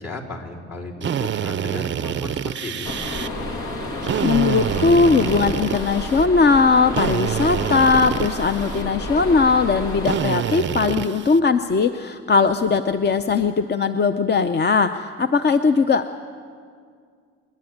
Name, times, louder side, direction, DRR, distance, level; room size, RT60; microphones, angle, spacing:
voice 1, 0.0-2.9, left 2 dB, 55° left, -2 dB, 3.9 m, -34 dB
Drill, 1.0-3.3 4.0-6.3 6.9-8.8 10.0-11.4, right 9 dB, 40° right, 0.5 m, -26 dB
sound 1, 2.8-10.2, left 2 dB, 85° left, 2.7 m, -30 dB
voice 2, 4.2-16.2, left 4 dB, 35° left, 9 dB, 0.6 m, -19 dB
29.0 x 10.5 x 9.3 m, 2.2 s
cardioid pair, 90°, 30 cm